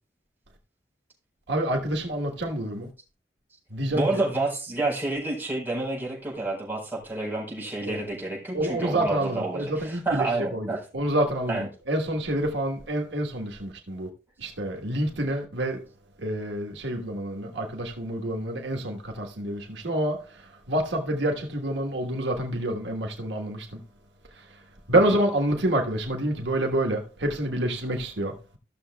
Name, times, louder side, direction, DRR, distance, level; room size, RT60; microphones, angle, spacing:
voice 1, 1.5-2.9 3.7-4.2 7.9-8.0 8.5-10.7 10.9-14.1 14.4-15.8 16.2-23.8 24.9-28.6, right 1 dB, 90° right, 1.4 m, -27 dB
voice 2, 3.9-10.8 11.5-11.7, right 2 dB, 10° right, 4.3 m, -29 dB
15.5 x 6.6 x 2.3 m
head